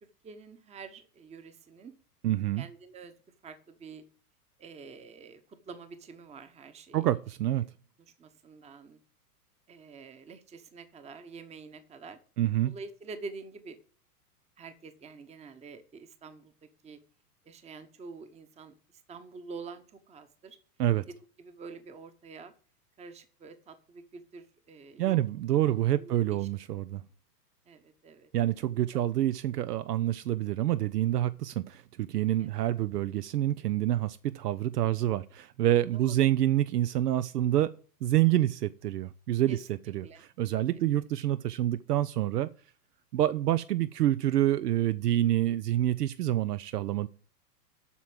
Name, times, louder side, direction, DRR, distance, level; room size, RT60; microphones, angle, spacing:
voice 1, 0.2-1.9 2.6-3.1 3.4-4.0 4.6-5.4 5.7-7.1 8.2-9.0 9.7-12.2 12.6-13.8 14.6-16.5 16.8-17.0 17.5-18.7 19.1-20.6 21.1-22.5 23.0-26.4 27.7-28.3 35.9-36.1 39.5-39.6 40.0-40.2, right 4 dB, 15° right, 1.0 m, -47 dB
voice 2, 2.2-2.6 6.9-7.6 12.4-12.7 20.8-21.0 25.0-27.0 28.3-39.6 39.9-42.5 43.1-47.1, right 13 dB, 80° right, 0.7 m, -27 dB
8.2 x 6.0 x 7.6 m
hypercardioid pair, 120°, 47 cm